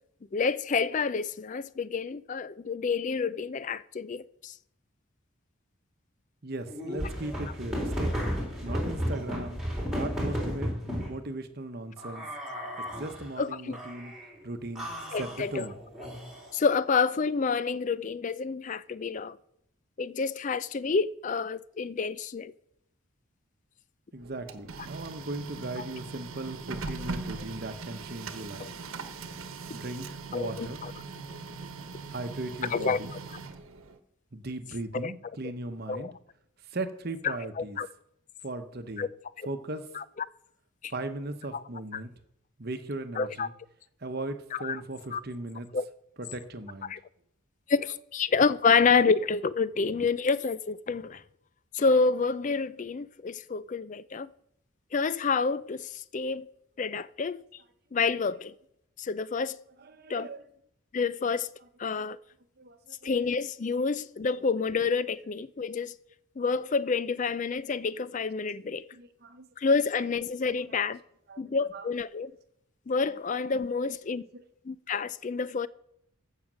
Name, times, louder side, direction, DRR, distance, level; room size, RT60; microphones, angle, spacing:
voice 1, 0.3-4.5 13.4-13.8 15.1-15.7 16.5-19.4 20.0-22.5 28.6-28.7 30.3-30.9 32.7-33.0 34.9-35.1 35.9-36.1 37.2-37.9 39.0-39.1 39.4-39.5 39.9-40.0 40.8-40.9 41.5-41.6 41.9-42.0 43.2-43.5 44.5-44.8 45.1-45.2 45.7-45.8 46.8-47.0 47.7-51.2 51.7-54.3 54.9-56.5 56.8-57.4 57.9-58.5 59.0-59.6 60.1-60.3 60.9-61.5 61.8-62.2 63.0-65.9 66.4-68.9 69.6-71.0 71.4-72.3 72.9-74.2 74.7-75.7, left 5 dB, 35° left, 0.4 m, -28 dB
voice 2, 6.4-8.1 8.6-9.6 9.9-12.3 13.0-14.1 14.4-14.9 15.2-15.8 24.1-28.7 29.7-30.8 32.1-33.1 34.3-36.1 36.7-37.8 38.4-39.1 39.5-39.8 40.9-42.1 42.6-43.5 44.0-45.7 46.2-46.9 59.8-60.4 62.0-62.1 62.6-63.1 68.9-69.5 71.3-71.9 73.8-73.9 74.3-74.4, right 2 dB, 45° right, 1.0 m, -38 dB
sound 1, 6.7-11.1 12.0-13.3 13.7-14.3 14.8-16.6, equal, ahead, 3.5 m, -33 dB
Printer, 24.2-34.0, right 4 dB, 75° right, 1.1 m, -40 dB
15.0 x 6.5 x 6.2 m
head